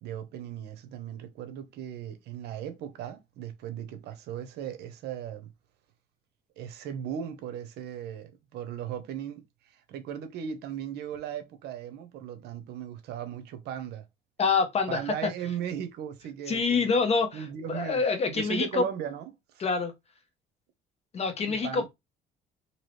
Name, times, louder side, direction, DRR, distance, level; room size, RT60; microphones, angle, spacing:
voice 1, 0.0-5.5 6.6-14.1 14.9-16.9 17.3-19.6 21.5-21.9, right 9 dB, 75° right, 0.7 m, -37 dB
voice 2, 14.4-15.3 16.5-18.9 19.6-19.9 21.1-21.9, left 4 dB, 40° left, 0.9 m, -26 dB
2.9 x 2.8 x 3.1 m
cardioid pair, 110°, 17 cm